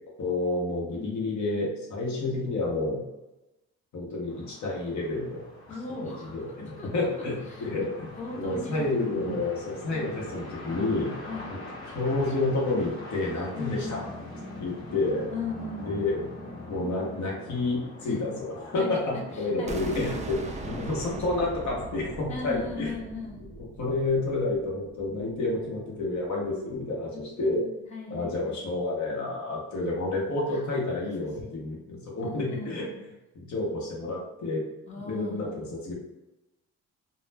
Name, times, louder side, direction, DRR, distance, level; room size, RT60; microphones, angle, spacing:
voice 1, 0.2-3.0 3.9-5.4 6.0-11.1 11.9-14.1 14.6-15.3 15.8-16.2 16.7-20.4 20.6-23.0 23.8-27.6 28.1-32.9 33.4-34.6 34.9-35.9, left 2 dB, 70° left, -3 dB, 0.9 m, -29 dB
voice 2, 0.9-1.4 5.7-6.4 6.8-6.9 7.5-7.7 8.2-9.1 11.3-11.5 13.5-14.2 15.3-16.1 18.0-18.2 18.8-19.0 19.3-20.3 22.3-23.4 27.1-28.6 30.5-30.6 31.0-31.1 31.4-31.6 32.2-32.9 34.9-35.5, left 3 dB, 25° left, -2 dB, 0.6 m, -38 dB
sound 1, 4.3-20.9, left 2 dB, 45° left, 1.1 m, -43 dB
sound 2, 19.7-25.5, right 3 dB, 25° right, 0.4 m, -39 dB
2.3 x 2.1 x 3.2 m, 0.98 s
cardioid pair, 90°, 30 cm